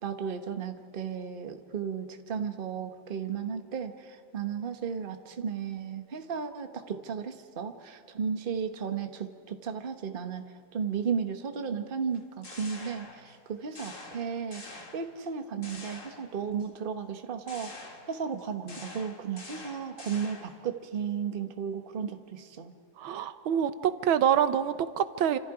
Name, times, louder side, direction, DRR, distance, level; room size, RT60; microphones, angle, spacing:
voice 1, 0.0-10.4 10.7-17.7 18.1-22.7, right 6 dB, 30° right, 7 dB, 1.2 m, -34 dB
sound 1, 12.1-13.4 13.7-15.3 15.6-16.7 17.5-20.6, left 3 dB, 40° left, 2.6 m, -46 dB
voice 2, 23.0-25.4, right 9 dB, 85° right, 12 dB, 1.7 m, -26 dB
28.5 x 26.5 x 4.9 m, 2.2 s
omnidirectional pair, 2.1 m